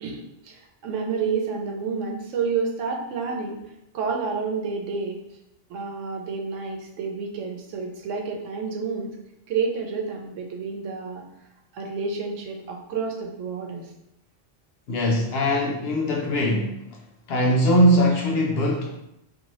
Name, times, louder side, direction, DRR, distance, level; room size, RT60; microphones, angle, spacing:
voice 1, 0.0-3.6 3.9-5.2 5.7-9.2 9.5-11.2 11.7-13.9, right 5 dB, 85° right, 2 dB, 0.9 m, -29 dB
voice 2, 14.9-16.7 17.3-19.0, equal, 65° left, 0 dB, 0.7 m, -21 dB
2.7 x 2.6 x 2.9 m, 0.85 s
omnidirectional pair, 1.3 m